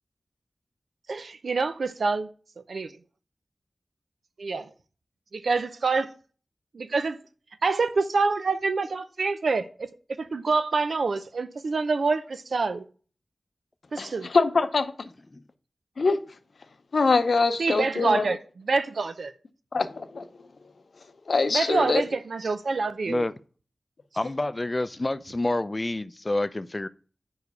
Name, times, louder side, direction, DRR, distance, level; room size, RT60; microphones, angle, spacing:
voice 1, 1.1-2.3 2.6-3.0 4.4-4.7 5.3-6.1 6.7-7.2 7.6-9.9 10.2-12.9 13.9-14.3 17.6-19.3 21.5-23.3, right 4 dB, 85° right, 0.5 m, -26 dB
voice 2, 14.3-14.9 16.0-16.2 16.9-18.2 19.7-20.2 21.3-22.0, left 4 dB, 75° left, 0.6 m, -23 dB
voice 3, 24.2-26.9, left 2 dB, 30° left, 0.4 m, -28 dB
4.9 x 4.8 x 5.4 m
wide cardioid pair, 65°, 0 cm